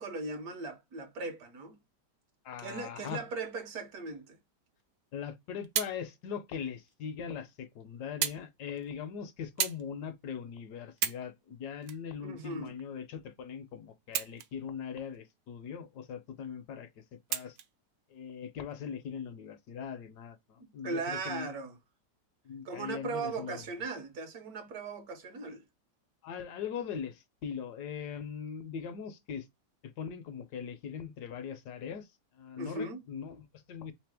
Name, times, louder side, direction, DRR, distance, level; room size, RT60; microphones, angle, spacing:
voice 1, 0.0-1.8 2.6-4.4 12.2-12.8 20.6-21.8 22.6-25.6 32.6-33.0, right 3 dB, 65° right, 1.1 m, -38 dB
voice 2, 2.4-3.2 5.1-16.9 17.3-17.6 18.1-21.5 22.4-23.7 26.2-29.5 29.8-32.1 32.4-33.9, left 7 dB, 75° left, 1.1 m, -40 dB
sound 1, 5.2-6.0 6.9-7.0 8.2-8.5 8.8-9.0 9.6-9.9 10.4-10.5 10.9-11.3 11.8-12.8 14.0-14.7 15.1-15.2 17.3-17.7 18.6-18.7, right 10 dB, 85° right, 1.3 m, -34 dB
3.3 x 3.1 x 3.3 m
omnidirectional pair, 1.9 m